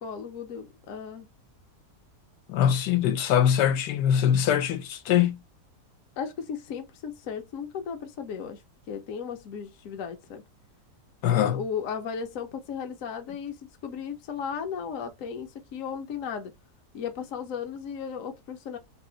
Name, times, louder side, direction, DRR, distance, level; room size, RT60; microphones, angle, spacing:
voice 1, 0.0-1.3 6.2-8.6 8.9-10.4 11.4-16.5 16.9-18.8, left 7 dB, 60° left, 0.9 m, -35 dB
voice 2, 2.5-5.4 11.2-11.6, left 9 dB, 90° left, 1.3 m, -23 dB
3.3 x 2.9 x 3.7 m
omnidirectional pair, 1.8 m